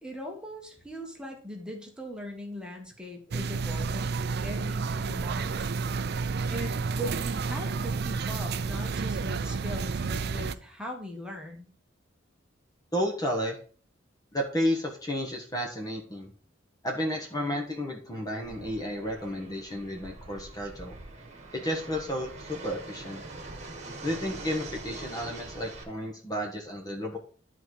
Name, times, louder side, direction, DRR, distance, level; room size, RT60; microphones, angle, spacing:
voice 1, 0.0-5.7 6.5-11.7, equal, 5° right, 1 dB, 1.6 m, -40 dB
sound 1, 3.3-10.5, right 4 dB, 60° right, 0.4 m, -30 dB
voice 2, 12.9-13.6 14.3-16.3 16.8-20.9 21.5-23.2 24.0-27.2, equal, 20° left, 1 dB, 1.3 m, -32 dB
Fixed-wing aircraft airplane, 18.4-25.8, right 3 dB, 35° right, 1.7 m, -44 dB
11.5 x 4.1 x 4.8 m, 0.42 s
head